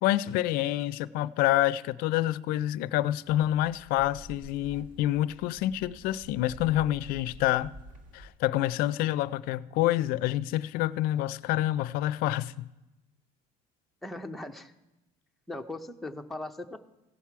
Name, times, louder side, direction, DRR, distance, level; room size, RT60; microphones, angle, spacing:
voice 1, 0.0-7.7 8.1-12.6, left 14 dB, 60° left, 0.4 m, -27 dB
sound 1, 3.3-8.3, right 1 dB, 50° right, 1.6 m, -49 dB
voice 2, 14.0-14.7 15.5-16.8, left 2 dB, ahead, 0.5 m, -39 dB
16.0 x 7.4 x 4.6 m
cardioid pair, 165°, 17 cm